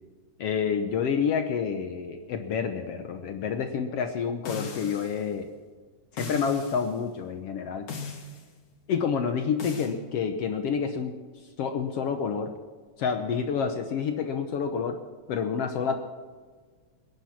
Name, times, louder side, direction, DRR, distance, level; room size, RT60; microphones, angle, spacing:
voice 1, 0.4-5.5 6.1-7.9 8.9-11.1 11.6-12.5 13.0-15.0 15.3-16.0, left 6 dB, 65° left, 6 dB, 1.7 m, -28 dB
sound 1, 4.5-5.2 6.2-6.9 7.9-8.5 9.6-9.9, left 4 dB, 85° left, 3.6 m, -38 dB
21.5 x 10.5 x 5.9 m, 1.5 s
omnidirectional pair, 3.4 m